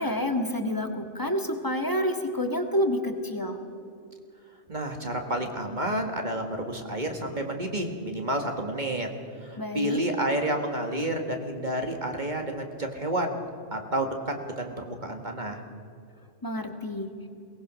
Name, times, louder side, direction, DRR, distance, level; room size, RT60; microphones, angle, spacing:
voice 1, 0.0-3.6 9.6-10.0 16.4-17.1, left 1 dB, 15° left, 5 dB, 1.7 m, -28 dB
voice 2, 4.7-9.1 9.4-13.4 13.7-15.6, right 1 dB, 40° right, 4 dB, 1.9 m, -30 dB
22.5 x 19.0 x 6.3 m, 2.4 s
omnidirectional pair, 1.2 m